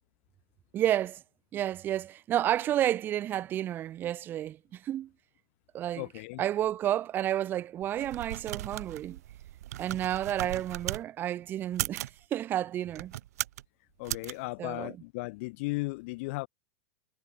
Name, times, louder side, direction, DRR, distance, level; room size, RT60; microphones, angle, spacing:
voice 1, 0.7-1.2 1.5-5.1 5.7-6.0 6.4-9.2 9.8-13.1 14.6-14.9, right 12 dB, 25° right, 0.7 m, -31 dB
voice 2, 6.0-6.4 14.0-16.5, left 25 dB, 50° left, 4.3 m, -36 dB
sound 1, 7.8-11.0 11.6-12.2 12.9-13.6 14.0-14.3, right 14 dB, 75° right, 1.3 m, -37 dB
supercardioid pair, 155°, 9 cm